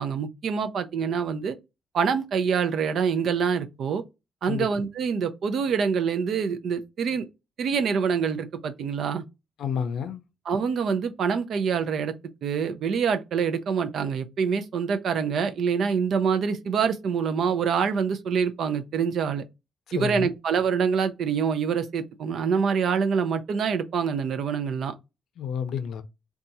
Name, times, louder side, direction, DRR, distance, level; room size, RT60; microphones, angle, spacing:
voice 1, 0.0-1.6 1.9-4.0 4.4-7.3 7.6-9.2 10.5-12.1 12.4-19.4 19.9-24.9, right 6 dB, 60° right, 0.5 m, -25 dB
voice 2, 9.6-10.2 19.9-20.3 25.4-26.0, left 7 dB, 70° left, 0.5 m, -30 dB
2.7 x 2.3 x 4.0 m
cardioid pair, 165°, 0 cm